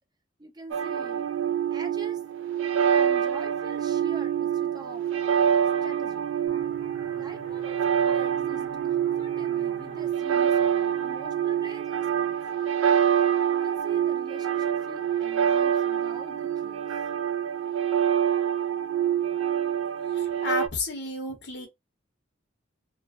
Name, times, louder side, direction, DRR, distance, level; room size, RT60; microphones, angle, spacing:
voice 1, 0.4-1.3 1.7-2.2 2.9-5.1 5.8-6.3 7.2-12.4 13.5-16.9, right 1 dB, 20° right, 0.5 m, -45 dB
sound 1, 0.7-20.7, right 9 dB, 75° right, 0.4 m, -26 dB
sound 2, 6.5-11.9, equal, 50° right, 0.9 m, -48 dB
voice 2, 20.1-21.7, left 3 dB, 60° left, 1.0 m, -32 dB
3.0 x 2.1 x 2.5 m
head